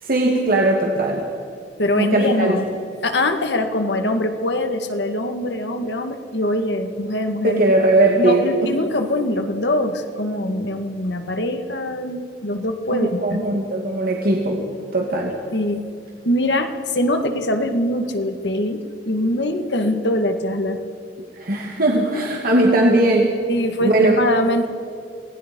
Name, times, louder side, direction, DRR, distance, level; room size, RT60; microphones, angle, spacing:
voice 1, 0.0-1.2 1.9-2.6 7.4-8.5 12.9-14.6 14.9-15.3 21.4-23.4 23.8-24.2, right 1 dB, 55° right, 0 dB, 2.5 m, -18 dB
voice 2, 1.8-2.7 3.0-7.6 8.2-13.4 15.5-15.9 16.3-20.8 23.5-24.7, left 1 dB, 70° left, 6 dB, 2.0 m, -23 dB
27.5 x 19.0 x 5.5 m, 2.4 s
head